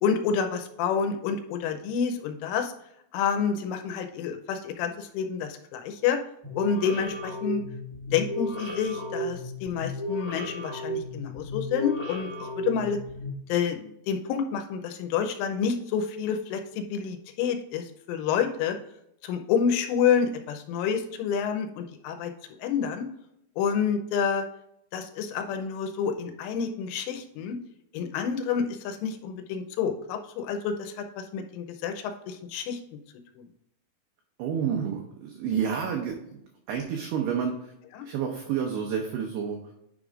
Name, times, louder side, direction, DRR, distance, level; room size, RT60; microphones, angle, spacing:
voice 1, 0.0-2.7 3.1-6.2 6.6-7.6 8.1-12.3 12.6-13.0 13.5-18.8 19.2-22.3 22.6-23.1 23.6-24.4 24.9-27.6 27.9-32.8 33.4-33.5 38.0-38.1, left 7 dB, 85° left, 5 dB, 3.2 m, -28 dB
sound 1, 6.4-13.3, left 1 dB, 65° left, 1.0 m, -34 dB
voice 2, 34.4-36.4 36.7-37.7 38.0-39.6, right 7 dB, 85° right, 1 dB, 2.3 m, -29 dB
9.9 x 5.0 x 2.4 m, 0.78 s
omnidirectional pair, 5.6 m